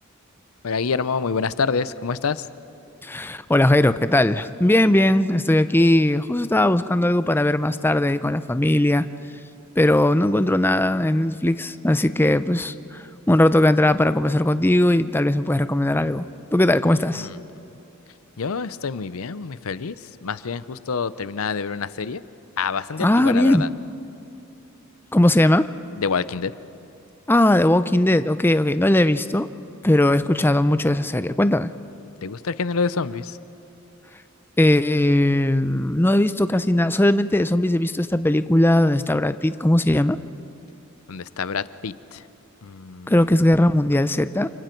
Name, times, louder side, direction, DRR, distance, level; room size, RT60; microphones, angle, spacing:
voice 1, 0.6-2.5 16.8-17.4 18.4-22.2 22.6-23.7 26.0-26.5 32.2-33.4 41.1-42.2 42.6-43.3, left 5 dB, 85° left, 15 dB, 0.6 m, -27 dB
voice 2, 3.0-9.0 9.8-16.3 16.5-17.3 23.0-23.6 25.1-25.7 27.3-29.5 29.8-31.7 34.6-40.2 43.1-44.5, left 1 dB, 10° left, 13 dB, 0.5 m, -19 dB
29.0 x 26.5 x 4.5 m, 2.7 s
head